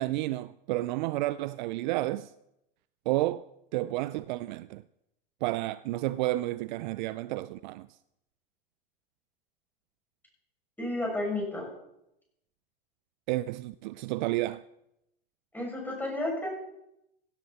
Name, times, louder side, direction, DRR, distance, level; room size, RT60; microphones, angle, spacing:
voice 1, 0.0-2.3 3.1-4.8 5.4-7.9 13.3-14.6, right 17 dB, 50° right, 0.5 m, -31 dB
voice 2, 10.8-11.7 15.5-16.5, left 1 dB, 5° left, 6.7 m, -32 dB
17.0 x 11.0 x 4.2 m
hypercardioid pair, 105°, 29 cm